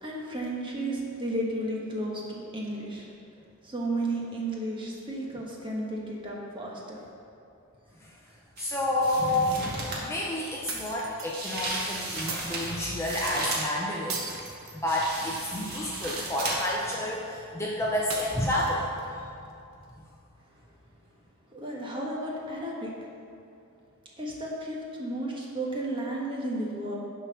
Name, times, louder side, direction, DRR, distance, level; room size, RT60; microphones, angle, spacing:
voice 1, 0.0-3.1 3.6-7.0 21.5-22.9 24.2-26.9, right 1 dB, 20° right, -3 dB, 1.3 m, -33 dB
voice 2, 8.6-14.3 14.7-19.3, left 1 dB, 10° left, -4 dB, 0.7 m, -30 dB
sound 1, 8.6-8.7 9.0-10.1 11.3-13.7 14.9-16.8 17.1-17.2, right 2 dB, 45° right, 1.6 m, -35 dB
sound 2, 10.7-11.5 12.3-12.9 14.1-15.3 16.4-17.0 18.1-19.0, right 4 dB, 65° right, 1.2 m, -38 dB
10.5 x 4.6 x 5.8 m, 2.6 s
head